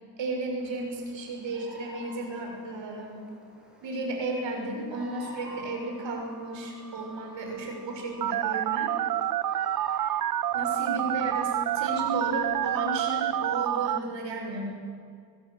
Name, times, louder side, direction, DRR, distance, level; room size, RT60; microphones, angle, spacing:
voice 1, 0.2-3.2 3.8-8.9 10.5-14.7, right 2 dB, 90° right, 1 dB, 6.5 m, -33 dB
Bird vocalization bird call bird song, 0.6-12.4, equal, ahead, 6.8 m, -50 dB
sound 1, 5.0-13.0, right 1 dB, 30° right, 7.2 m, -50 dB
Telephone, 8.2-14.0, right 12 dB, 50° right, 0.6 m, -28 dB
25.0 x 22.5 x 8.1 m, 2.3 s
wide cardioid pair, 140°, 43 cm